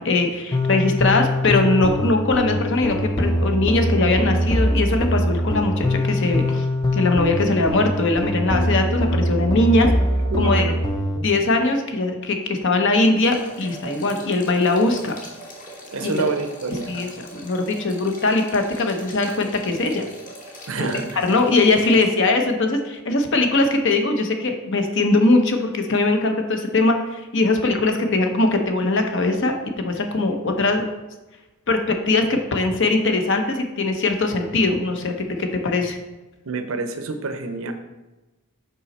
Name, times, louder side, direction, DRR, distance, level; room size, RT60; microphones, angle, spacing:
voice 1, 0.0-6.7 6.9-9.9 10.4-10.7 11.2-15.1 16.0-16.2 16.9-20.0 20.8-20.9 21.2-30.8 31.7-36.0, left 2 dB, 55° left, 5 dB, 0.8 m, -21 dB
sound 1, 0.5-11.2, left 1 dB, 20° left, 0.5 m, -22 dB
voice 2, 10.3-11.2 15.9-16.9 20.7-21.1 36.4-37.7, right 3 dB, 65° right, 7 dB, 0.6 m, -27 dB
sound 2, 13.2-22.1, right 1 dB, 35° left, 1.1 m, -40 dB
5.6 x 5.0 x 4.2 m, 1.1 s
head